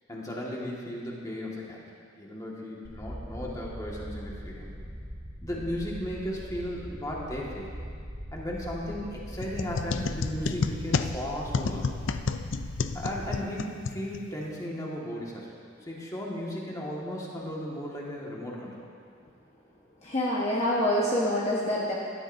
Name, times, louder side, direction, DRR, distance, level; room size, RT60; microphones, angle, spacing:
voice 1, 0.1-1.8 2.2-4.7 5.4-7.7 8.3-11.9 12.9-15.5 15.8-18.9, equal, 20° left, -4 dB, 1.8 m, -35 dB
sound 1, 2.8-13.4, equal, 20° right, 1.3 m, -41 dB
sound 2, 9.4-14.5, left 4 dB, 75° left, 0.5 m, -31 dB
voice 2, 20.0-21.9, left 1 dB, 35° left, -6 dB, 1.3 m, -26 dB
17.5 x 13.0 x 2.7 m, 2.2 s
head